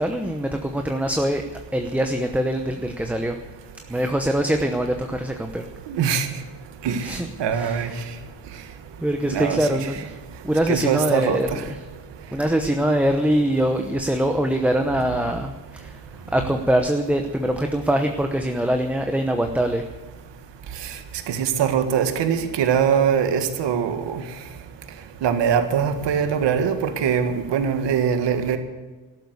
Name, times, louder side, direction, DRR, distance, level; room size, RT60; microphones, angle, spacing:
voice 1, 0.0-1.4 1.7-3.4 3.9-5.7 7.0-7.3 7.5-7.9 9.0-10.2 10.4-11.5 12.3-16.0 16.3-19.8, right 1 dB, 5° right, 5 dB, 0.9 m, -23 dB
voice 2, 5.9-6.3 6.8-7.9 9.3-9.9 10.7-11.6 20.8-21.0 21.3-24.2 25.2-28.6, right 7 dB, 70° right, 8 dB, 1.8 m, -22 dB
14.0 x 12.0 x 8.2 m, 1.2 s
cardioid pair, 130°, 45 cm